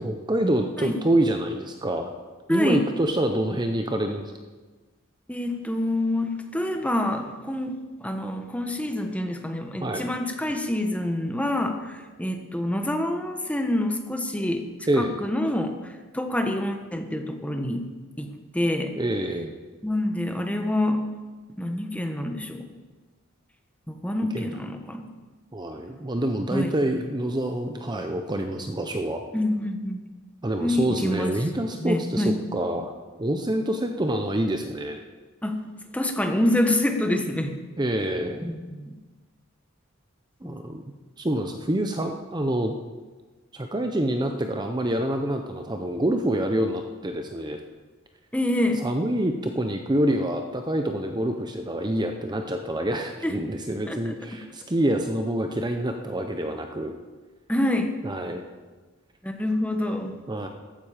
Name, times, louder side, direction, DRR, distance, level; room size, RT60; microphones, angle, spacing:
voice 1, 0.0-2.1 2.5-4.3 9.8-10.1 14.9-15.2 19.0-19.5 24.3-24.5 25.5-29.2 30.4-32.9 33.2-35.0 37.8-38.5 40.4-40.8 41.2-42.7 43.5-47.6 48.8-56.9 58.0-58.4 60.3-60.5, right 1 dB, 20° right, 5 dB, 0.7 m, -26 dB
voice 2, 2.5-2.8 5.3-14.7 15.0-17.9 18.2-19.0 19.8-21.0 21.5-22.7 23.9-25.1 26.5-26.7 29.3-30.0 30.6-31.4 31.7-32.4 35.4-35.6 35.9-37.5 38.4-38.9 40.4-40.6 48.3-48.9 53.2-53.3 53.9-54.0 57.5-57.9 59.2-60.1, left 1 dB, 5° left, 5 dB, 1.2 m, -27 dB
14.5 x 12.5 x 5.0 m, 1.3 s
head